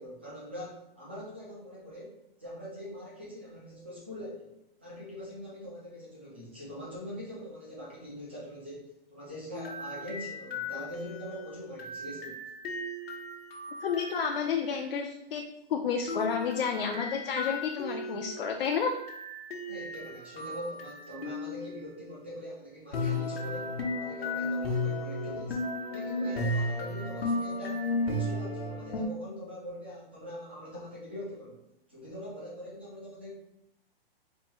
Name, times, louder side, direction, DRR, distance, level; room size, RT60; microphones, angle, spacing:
voice 1, 0.0-4.5 4.8-12.4 19.7-25.6 25.9-31.6 31.9-33.3, equal, 10° right, -6 dB, 0.4 m, -43 dB
sound 1, 9.5-14.8 16.1-21.9 22.9-29.1, left 2 dB, 90° left, 1.0 m, -35 dB
voice 2, 13.8-15.4 15.7-18.9, left 6 dB, 65° left, 2 dB, 0.5 m, -30 dB
4.4 x 2.6 x 3.0 m, 0.81 s
hypercardioid pair, 175°, 30 cm